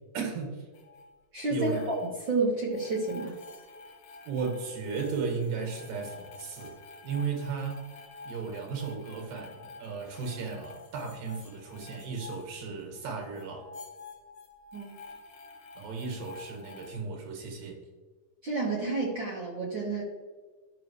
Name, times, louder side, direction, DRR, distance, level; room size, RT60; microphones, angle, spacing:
voice 1, 0.1-0.7 1.5-1.8 4.3-6.8 7.0-7.8 8.2-13.7 15.8-17.8, right 5 dB, 85° right, 1 dB, 3.5 m, -35 dB
sound 1, 0.7-1.1 1.4-2.3 2.7-13.0 13.3-16.9, left 3 dB, 60° left, 2.7 m, -49 dB
voice 2, 1.3-1.7 2.3-3.3 14.7-14.9 18.4-20.0, right 3 dB, 55° right, -4 dB, 1.4 m, -30 dB
13.5 x 5.8 x 3.1 m, 1.3 s
omnidirectional pair, 3.9 m